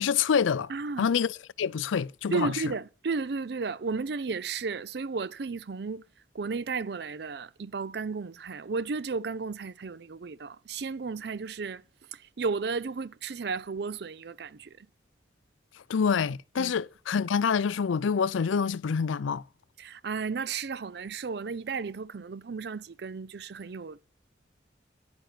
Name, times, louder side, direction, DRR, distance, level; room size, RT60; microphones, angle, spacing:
voice 1, 0.0-0.7 1.0-2.5 15.9-19.4, left 6 dB, 90° left, 0.4 m, -26 dB
voice 2, 0.7-1.1 2.3-6.0 6.3-11.8 12.1-14.9 16.6-16.7 19.8-24.0, right 4 dB, 60° right, 0.5 m, -33 dB
10.5 x 9.0 x 4.5 m
head